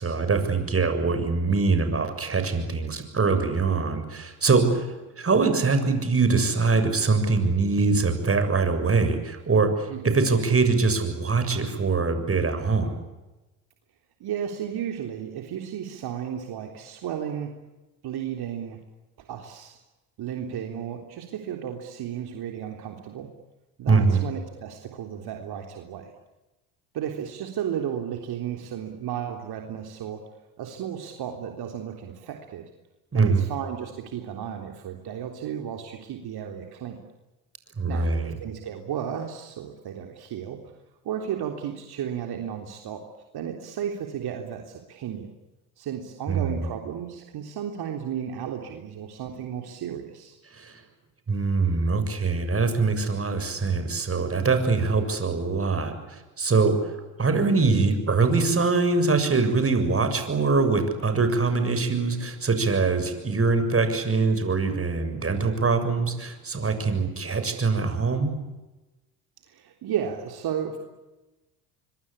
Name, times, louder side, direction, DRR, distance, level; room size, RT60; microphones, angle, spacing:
voice 1, 0.0-13.0 23.9-24.2 33.1-33.5 37.8-38.3 46.3-46.6 50.5-50.8 51.3-56.9 57.2-68.3, right 4 dB, 30° right, 8 dB, 7.1 m, -23 dB
voice 2, 14.2-17.5 18.0-18.8 19.3-19.8 20.2-23.3 23.8-26.1 26.9-30.2 30.6-32.6 33.1-37.0 37.9-40.6 41.0-43.0 43.3-45.3 45.8-50.4 69.5-70.8, right 9 dB, 60° right, 3 dB, 3.6 m, -33 dB
25.0 x 24.0 x 8.7 m, 1.1 s
hypercardioid pair, 65°, 44 cm